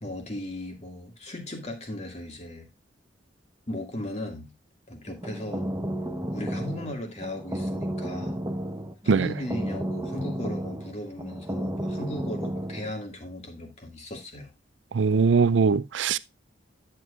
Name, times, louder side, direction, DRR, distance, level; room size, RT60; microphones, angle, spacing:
voice 1, 0.0-2.7 3.7-4.5 4.9-5.7 6.3-8.4 9.0-14.5, left 1 dB, 40° left, 2.2 m, -37 dB
sound 1, 5.1-12.9, right 1 dB, 20° right, 1.0 m, -32 dB
voice 2, 14.9-16.2, right 5 dB, 75° right, 0.5 m, -21 dB
11.0 x 7.6 x 2.5 m
head